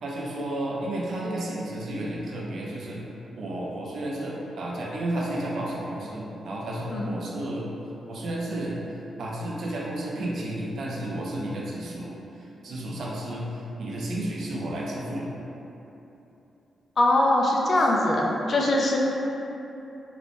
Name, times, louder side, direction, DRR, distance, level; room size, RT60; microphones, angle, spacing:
voice 1, 0.0-3.0 3.4-7.7 8.1-8.8 9.2-15.3 17.8-17.9, right 1 dB, 55° right, -4 dB, 0.5 m, -32 dB
voice 2, 17.0-19.0, left 1 dB, 35° left, -2 dB, 0.3 m, -22 dB
2.9 x 2.6 x 3.3 m, 3.0 s
wide cardioid pair, 170°, 0 cm